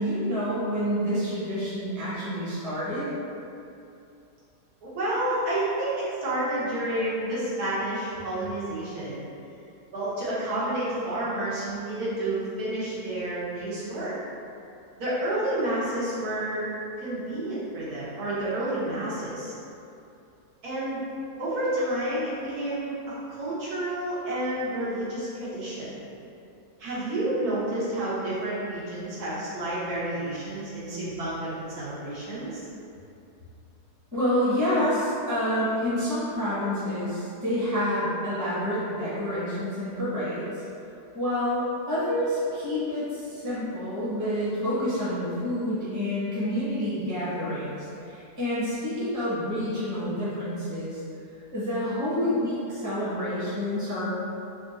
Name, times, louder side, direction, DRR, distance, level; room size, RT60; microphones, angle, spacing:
voice 1, 0.0-3.1 34.1-40.5 41.1-47.8 48.1-51.0 51.5-54.1, equal, 15° right, -10 dB, 0.9 m, -28 dB
voice 2, 4.8-9.2 9.9-14.1 15.0-16.7 17.0-19.5 20.6-21.0 21.4-22.9 23.3-25.9 26.8-32.6, right 1 dB, 70° right, -10 dB, 1.6 m, -30 dB
3.6 x 2.5 x 4.0 m, 2.7 s
omnidirectional pair, 1.7 m